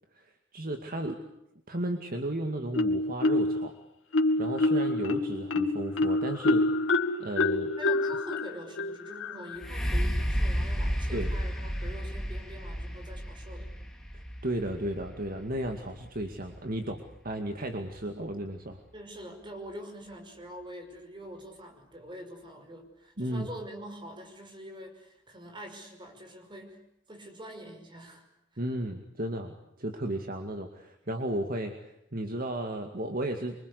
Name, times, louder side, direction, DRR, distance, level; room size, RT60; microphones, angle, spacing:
voice 1, 0.1-1.2 1.7-3.7 4.4-6.6 7.2-7.7 11.1-11.3 14.1-18.8 23.2-23.5 28.6-33.5, right 1 dB, 45° right, 5 dB, 2.2 m, -34 dB
Marimba xylophone, 2.7-3.7 4.1-9.6, left 2 dB, 90° left, 2.4 m, -27 dB
voice 2, 7.7-13.7 18.9-26.8 27.1-28.3, equal, 25° right, 5 dB, 5.5 m, -45 dB
sound 1, 9.6-17.3 18.0-18.1, equal, ahead, 2.8 m, -32 dB
27.0 x 24.5 x 8.4 m, 0.80 s
head